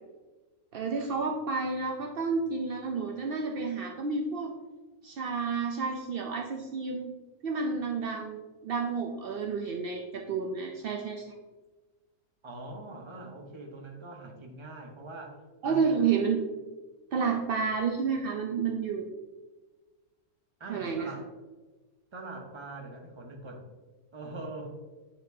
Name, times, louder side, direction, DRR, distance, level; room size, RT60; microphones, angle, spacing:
voice 1, 0.7-4.5 5.0-7.1 7.4-11.2 15.6-16.4 17.1-19.0 20.7-21.1, right 5 dB, 75° right, 1 dB, 0.5 m, -30 dB
voice 2, 12.4-16.1 20.6-21.3 22.1-23.6 24.1-24.7, right 2 dB, 25° right, 1 dB, 0.7 m, -43 dB
8.7 x 4.3 x 2.7 m, 1.2 s
omnidirectional pair, 1.6 m